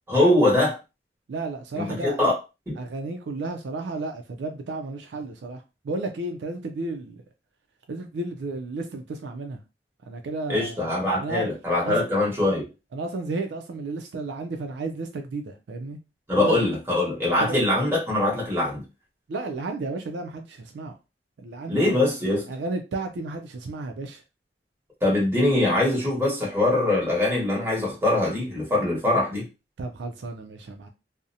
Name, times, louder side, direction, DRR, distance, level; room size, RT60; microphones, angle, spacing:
voice 1, 0.1-0.8 1.8-2.3 2.7-2.8 10.5-12.7 16.3-18.8 21.7-22.4 25.0-29.5, left 1 dB, 15° right, 1.1 m, -22 dB
voice 2, 1.3-2.2 2.8-7.2 7.9-9.6 10.1-10.9 11.2-11.5 11.9-12.0 12.9-16.0 16.4-16.6 17.4-17.6 19.3-20.9 21.4-22.1 22.5-24.2 29.8-30.9, right 3 dB, 70° right, 0.3 m, -33 dB
2.5 x 2.0 x 2.6 m
head